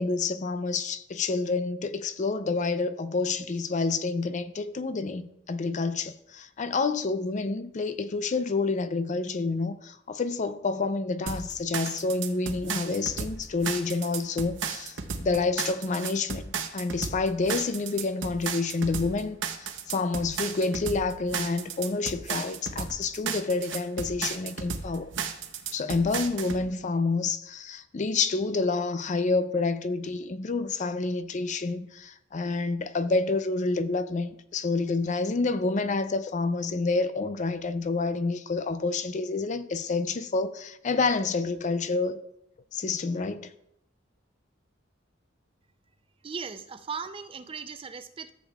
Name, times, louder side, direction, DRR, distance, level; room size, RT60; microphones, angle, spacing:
voice 1, 0.0-25.1 25.7-42.2 42.7-43.5, left 3 dB, 40° left, 0.4 m, -28 dB
sound 1, 11.3-26.6, right 6 dB, 70° right, 0.8 m, -34 dB
voice 2, 46.2-48.3, right 5 dB, 30° right, 0.4 m, -38 dB
13.5 x 7.3 x 2.4 m
head